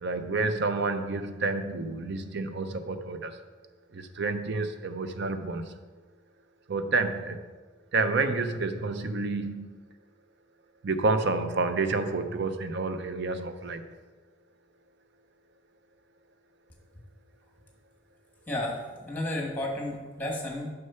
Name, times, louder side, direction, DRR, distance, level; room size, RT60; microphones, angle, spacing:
voice 1, 0.0-3.4 3.9-5.7 6.7-7.4 7.9-9.8 10.8-13.8, right 3 dB, 55° right, 9 dB, 0.6 m, -29 dB
voice 2, 18.5-20.7, left 1 dB, 10° left, -1 dB, 1.5 m, -32 dB
6.4 x 5.7 x 5.6 m, 1.4 s
head